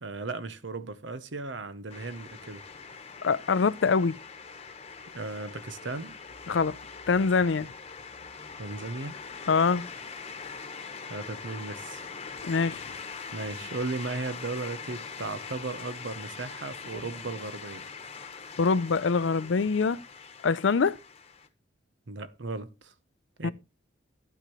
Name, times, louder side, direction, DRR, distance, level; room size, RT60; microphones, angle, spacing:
voice 1, 0.0-2.7 5.1-6.1 8.6-9.2 11.1-12.0 13.3-17.9 22.1-22.9 23.4-23.5, right 3 dB, 75° right, 0.9 m, -36 dB
sound 1, 1.9-21.5, left 5 dB, 35° left, 1.2 m, -42 dB
voice 2, 3.2-4.2 6.5-6.8 7.1-7.7 9.5-9.9 12.4-12.8 18.6-20.0 20.4-21.0 23.4-23.5, left 5 dB, 80° left, 0.5 m, -24 dB
11.5 x 9.2 x 3.1 m
head